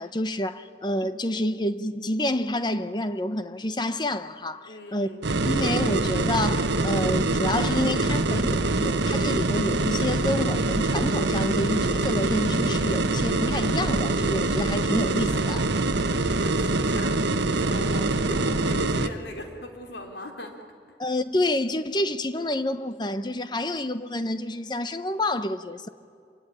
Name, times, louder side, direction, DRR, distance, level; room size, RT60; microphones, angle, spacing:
voice 1, 0.0-5.1 5.4-15.7 21.0-25.9, left 1 dB, 25° left, 0.9 m, -28 dB
voice 2, 4.7-5.3 15.9-20.6, left 1 dB, 70° left, 3.8 m, -39 dB
sound 1, 5.2-19.1, right 2 dB, 75° right, 1.1 m, -24 dB
26.0 x 23.0 x 10.0 m
head